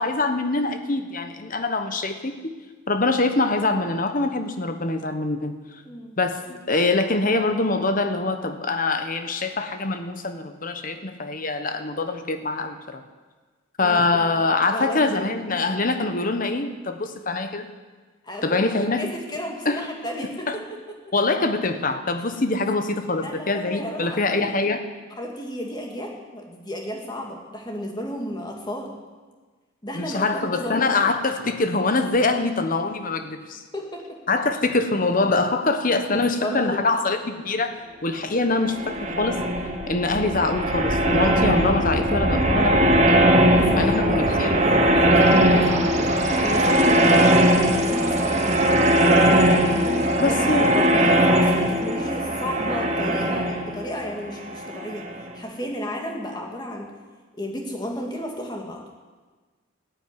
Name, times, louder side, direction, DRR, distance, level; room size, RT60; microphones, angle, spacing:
voice 1, 0.0-2.3 2.9-5.6 6.2-13.0 13.8-17.7 18.4-19.0 19.6-19.9 20.5-20.6 21.1-24.8 29.9-33.6 34.3-39.4 39.9-43.2 43.7-44.6 50.2-50.7, left 3 dB, 40° left, 8 dB, 1.1 m, -24 dB
voice 2, 5.8-6.2 13.8-14.0 14.7-15.3 18.2-20.6 23.2-24.5 25.2-29.0 29.8-30.9 33.7-34.2 36.1-36.8 40.1-40.4 43.5-48.6 49.6-55.1 55.3-56.9 57.4-58.8, equal, 20° left, 0 dB, 2.2 m, -33 dB
sound 1, 38.6-55.2, right 1 dB, 35° right, 1.3 m, -20 dB
14.0 x 9.1 x 9.6 m, 1.4 s
head